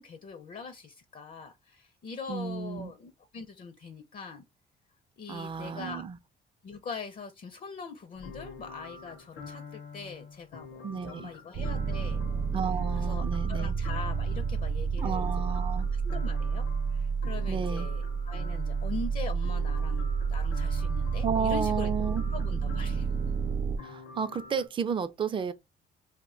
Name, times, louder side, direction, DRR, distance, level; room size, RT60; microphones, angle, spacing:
voice 1, 0.0-4.4 5.2-6.0 6.6-12.5 12.9-15.6 15.9-16.6 16.9-21.9 22.3-23.1, left 5 dB, 45° left, 0.5 m, -42 dB
voice 2, 2.3-2.9 5.3-6.2 10.8-11.3 12.5-13.7 15.0-15.9 17.5-17.9 21.2-22.2 23.8-25.5, right 6 dB, 25° right, 0.3 m, -32 dB
sound 1, 8.1-24.7, left 4 dB, 80° left, 0.7 m, -46 dB
sound 2, 11.5-23.8, right 5 dB, 70° right, 0.6 m, -30 dB
2.2 x 2.1 x 3.6 m
cardioid pair, 90°, 20 cm